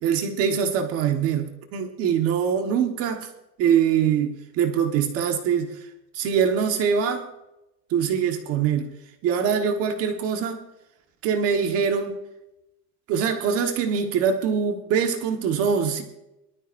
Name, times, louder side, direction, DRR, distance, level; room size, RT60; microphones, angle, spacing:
voice 1, 0.0-3.3 3.6-5.9 6.1-7.3 7.9-8.9 9.2-10.6 11.2-12.1 13.1-16.0, right 7 dB, 45° right, 4 dB, 1.5 m, -23 dB
23.5 x 13.0 x 2.7 m, 0.91 s
cardioid pair, 175°, 32 cm